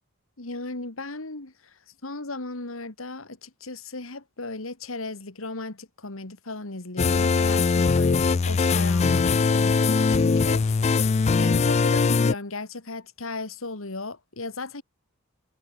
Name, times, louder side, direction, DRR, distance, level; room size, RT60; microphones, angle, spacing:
voice 1, 0.4-11.1 11.4-14.8, left 3 dB, 85° left, 2.3 m, -36 dB
sound 1, 7.0-12.3, left 4 dB, 30° left, 0.3 m, -21 dB
head